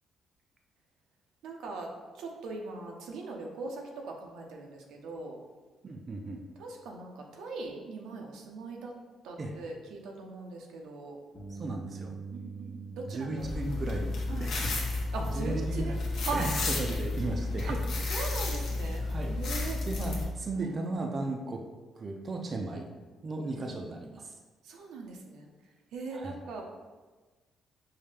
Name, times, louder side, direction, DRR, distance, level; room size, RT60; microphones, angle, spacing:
voice 1, 1.4-1.9 2.2-5.4 6.6-8.9 9.2-11.2 12.3-13.8 14.3-14.5 15.1-16.5 17.6-17.8 18.1-19.8 20.6-20.7 23.4-23.8 24.6-25.5 25.9-26.6, right 3 dB, 85° right, 1 dB, 0.6 m, -40 dB
voice 2, 5.8-6.4 9.4-9.6 11.5-12.1 13.1-16.0 16.3-17.9 19.0-19.4 19.9-21.7 22.0-22.9 23.2-24.3 26.1-26.3, right 2 dB, 40° right, 2 dB, 0.4 m, -36 dB
Bass guitar, 11.3-17.6, right 5 dB, 20° left, 0.9 m, -46 dB
sound 1, 13.4-20.2, left 2 dB, 75° left, 0.8 m, -32 dB
5.5 x 2.1 x 3.2 m, 1.3 s
cardioid pair, 90°, 0 cm